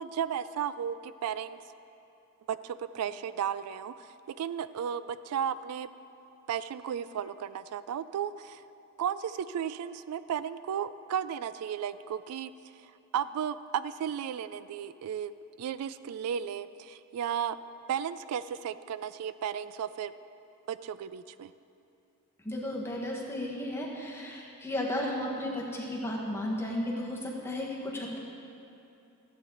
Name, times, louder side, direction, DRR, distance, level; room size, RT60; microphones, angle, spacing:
voice 1, 0.0-1.6 2.5-5.9 6.5-8.6 9.0-12.5 13.1-15.3 15.6-17.6 17.9-20.1 20.7-21.5, right 8 dB, 85° right, 16 dB, 0.3 m, -34 dB
voice 2, 22.4-28.2, left 1 dB, 10° left, -3 dB, 1.3 m, -34 dB
14.0 x 8.5 x 3.9 m, 2.8 s
head